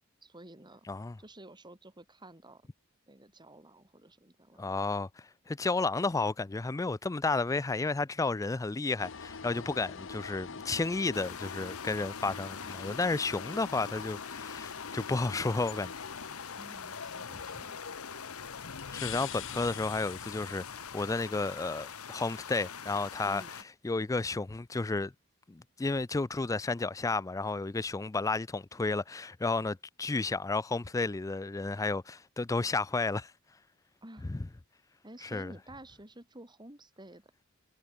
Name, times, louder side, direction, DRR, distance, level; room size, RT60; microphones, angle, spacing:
voice 1, 0.0-0.9 1.2-2.7 3.1-4.8 16.6-17.8 23.2-23.5 34.0-34.3 35.0-37.3, right 1 dB, 20° right, 6.5 m, -52 dB
voice 2, 4.6-5.1 5.5-15.9 18.9-23.4 23.8-25.1 25.5-33.3 34.3-34.4 35.3-35.5, left 3 dB, 15° left, 0.4 m, -32 dB
sound 1, 9.0-21.2, left 5 dB, 60° left, 1.0 m, -44 dB
sound 2, 11.1-23.6, left 7 dB, 80° left, 1.6 m, -44 dB
head